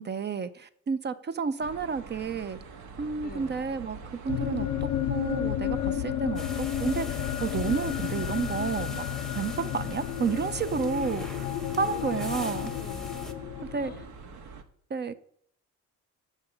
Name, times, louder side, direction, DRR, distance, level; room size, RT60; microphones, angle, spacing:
voice 1, 0.0-2.6 3.0-4.0 4.2-9.0 9.3-11.5 11.8-12.7 13.7-13.9 14.9-15.1, right 5 dB, 25° right, 13 dB, 0.4 m, -31 dB
sound 1, 1.6-14.6, right 5 dB, 55° right, 1.0 m, -46 dB
voice 2, 3.2-3.6 11.8-13.1 13.7-14.1, left 6 dB, 20° left, 14 dB, 0.6 m, -46 dB
sound 2, 4.3-14.1, left 12 dB, 65° left, 0.6 m, -32 dB
sound 3, 6.4-13.3, left 1 dB, ahead, 0.9 m, -42 dB
7.1 x 5.4 x 5.4 m, 0.66 s
hypercardioid pair, 50°, 44 cm